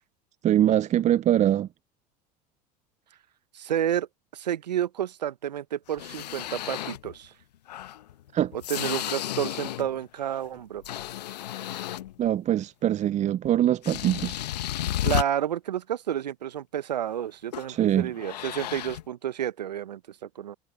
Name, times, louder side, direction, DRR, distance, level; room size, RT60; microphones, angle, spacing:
voice 1, 0.4-1.7 8.3-8.5 12.2-14.4 17.7-18.1, right 11 dB, 35° right, 0.6 m, -23 dB
voice 2, 3.5-4.1 4.3-7.3 8.5-10.8 15.0-20.6, right 10 dB, 85° right, 0.9 m, -30 dB
sound 1, 5.9-7.1 7.7-10.0 10.3-12.3 13.4-13.6 13.8-15.2 17.5-17.8 18.1-19.0, left 13 dB, 80° left, 1.0 m, -33 dB
hypercardioid pair, 75°, 21 cm